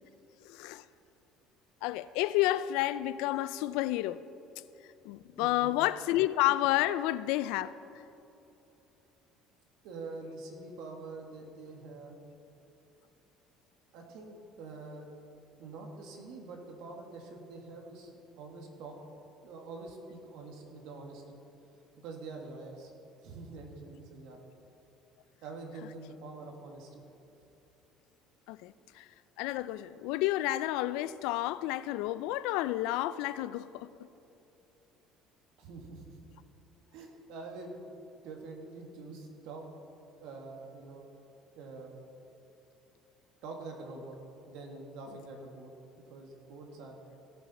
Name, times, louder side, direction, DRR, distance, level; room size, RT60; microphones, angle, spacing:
voice 1, 0.4-0.8 1.8-4.2 5.0-7.8 28.5-29.1 29.4-33.9, left 15 dB, 85° left, 0.3 m, -30 dB
voice 2, 5.4-5.8 9.8-12.2 13.9-15.1 15.6-18.1 18.4-19.0 19.4-21.4 22.0-22.9 23.2-24.4 25.4-27.0 35.6-36.2 36.9-37.9 38.2-39.7 40.2-41.1 41.5-42.0 43.4-44.2 44.5-45.7 46.1-47.1, right 3 dB, 75° right, 1.8 m, -45 dB
17.0 x 7.1 x 4.2 m
cardioid pair, 145°, 0 cm